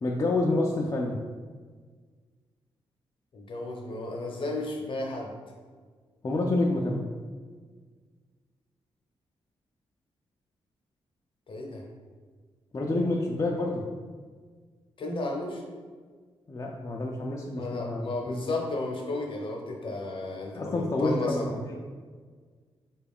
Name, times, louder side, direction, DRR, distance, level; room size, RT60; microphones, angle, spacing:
voice 1, 0.0-1.2 6.2-7.1 12.7-13.8 16.5-18.5 20.5-21.8, left 2 dB, 35° left, -1 dB, 0.4 m, -28 dB
voice 2, 3.3-5.3 11.5-11.8 15.0-15.6 17.5-21.5, left 2 dB, 55° left, 0 dB, 0.7 m, -33 dB
3.6 x 2.3 x 3.5 m, 1.6 s
cardioid pair, 65°, 11 cm